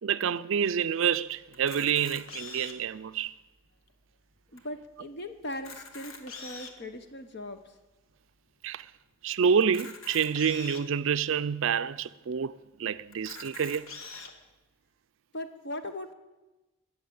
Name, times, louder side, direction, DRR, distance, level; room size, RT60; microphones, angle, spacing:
voice 1, 0.0-3.3 8.6-8.9 9.2-12.5 12.8-13.9, right 7 dB, 70° right, 0.4 m, -28 dB
Camera, 1.5-2.9 3.6-3.7 3.9-4.0 4.6-4.7 5.5-6.8 7.5-7.6 9.6-10.8 11.6-11.7 11.9-12.0 13.1-14.3, left 4 dB, 85° left, 1.8 m, -43 dB
voice 2, 4.5-7.6 15.3-16.1, left 1 dB, 50° left, 0.9 m, -39 dB
21.5 x 7.2 x 8.7 m
head